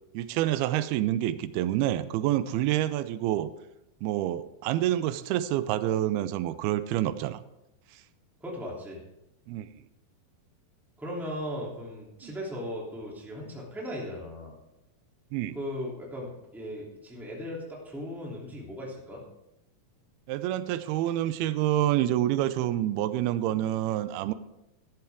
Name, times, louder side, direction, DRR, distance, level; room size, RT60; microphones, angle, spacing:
voice 1, 0.1-3.5 4.0-7.4 9.5-9.7 12.2-12.4 15.3-15.6 20.3-24.3, right 13 dB, 90° right, 14 dB, 2.5 m, -27 dB
voice 2, 8.4-9.0 11.0-14.6 15.5-19.2, equal, ahead, -3 dB, 2.2 m, -37 dB
14.0 x 11.0 x 3.6 m, 0.88 s
omnidirectional pair, 4.4 m